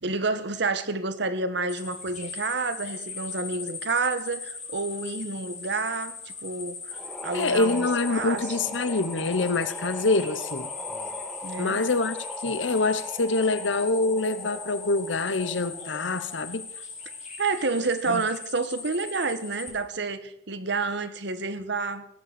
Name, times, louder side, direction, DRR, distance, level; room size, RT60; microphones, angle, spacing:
voice 1, 0.0-8.8 11.4-11.8 17.4-22.1, right 3 dB, 65° right, 1.3 m, -29 dB
sound 1, 1.7-19.7, left 5 dB, 45° left, 5.8 m, -39 dB
sound 2, 6.9-16.6, left 1 dB, ahead, 1.6 m, -40 dB
voice 2, 7.3-10.7 11.6-12.2 12.4-16.7 18.1-18.2, left 3 dB, 75° left, 1.0 m, -25 dB
17.5 x 8.9 x 6.9 m
head